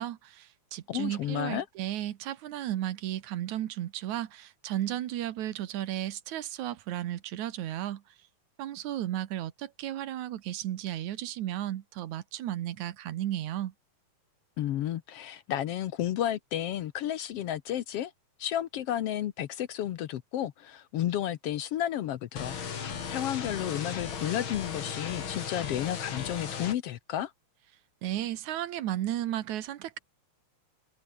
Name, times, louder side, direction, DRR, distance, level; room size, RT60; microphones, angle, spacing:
voice 1, 0.0-8.0 8.6-13.7 28.0-30.0, right 12 dB, 80° right, 2.6 m, -34 dB
voice 2, 0.9-1.6 14.6-18.1 18.4-22.6 23.1-27.3, left 11 dB, 65° left, 1.7 m, -32 dB
sound 1, 22.4-26.8, left 7 dB, 45° left, 2.7 m, -36 dB
omnidirectional pair, 3.3 m